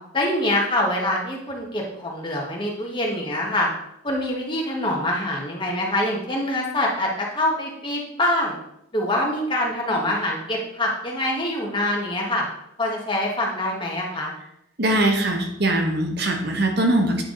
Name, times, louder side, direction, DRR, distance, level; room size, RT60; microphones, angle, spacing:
voice 1, 0.1-3.7 4.0-8.6 8.9-12.4 12.8-14.3, left 1 dB, 25° left, -1 dB, 1.4 m, -25 dB
voice 2, 14.8-17.2, right 1 dB, 50° right, 2 dB, 1.0 m, -21 dB
9.0 x 4.6 x 3.8 m, 0.79 s
head